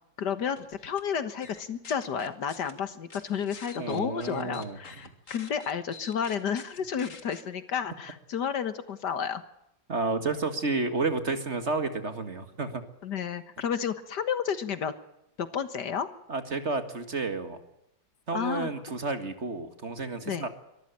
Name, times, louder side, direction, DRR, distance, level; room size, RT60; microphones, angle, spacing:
voice 1, 0.2-9.4 13.0-14.9 15.4-16.1 18.3-18.7 20.2-20.5, left 7 dB, 65° left, 12 dB, 1.9 m, -31 dB
sound 1, 0.6-1.0 1.4-2.7 3.1-7.4, left 4 dB, 45° left, 2.2 m, -47 dB
voice 2, 3.8-4.8 9.9-12.8 16.3-17.6 18.3-20.5, right 3 dB, 40° right, 9 dB, 2.0 m, -31 dB
23.5 x 14.0 x 8.9 m, 0.84 s
omnidirectional pair, 2.0 m